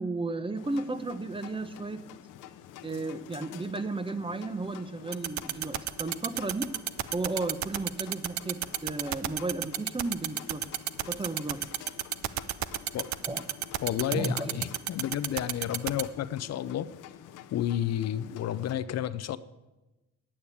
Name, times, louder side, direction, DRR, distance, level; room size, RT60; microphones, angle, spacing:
voice 1, 0.0-2.0 2.8-6.7 7.1-10.6 11.1-11.6 13.2-13.4 14.1-14.6, right 2 dB, 15° right, 11 dB, 0.8 m, -34 dB
sound 1, 0.5-18.8, left 11 dB, 90° left, 0.8 m, -49 dB
sound 2, 5.1-16.0, right 12 dB, 70° right, 0.6 m, -30 dB
voice 2, 13.8-16.9 17.5-19.4, left 11 dB, 60° left, 14 dB, 0.5 m, -31 dB
9.6 x 8.6 x 8.4 m, 1.1 s
cardioid pair, 90°, 30 cm